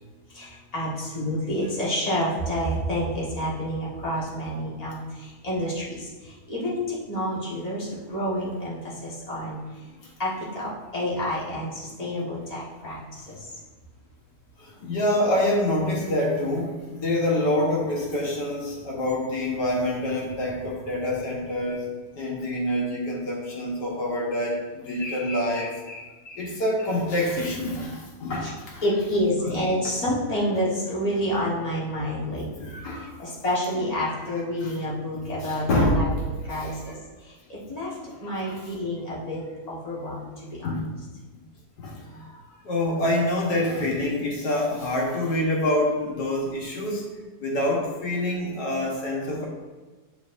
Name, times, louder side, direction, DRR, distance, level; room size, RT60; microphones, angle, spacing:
voice 1, 0.3-9.6 10.2-13.5 28.4-28.5 28.8-32.7 33.2-35.7 35.9-37.0 37.2-37.9 38.2-40.8, equal, 25° left, -7 dB, 1.6 m, -29 dB
voice 2, 14.6-21.9 22.1-28.8 29.4-29.6 32.5-33.2 34.6-34.7 35.2-37.0 38.0-38.1 38.4-38.6 40.6-40.9 41.3-41.4 41.8-42.4 42.6-47.0 47.4-49.5, left 1 dB, 90° left, -3 dB, 1.9 m, -26 dB
8.9 x 4.6 x 2.6 m, 1.3 s
omnidirectional pair, 1.7 m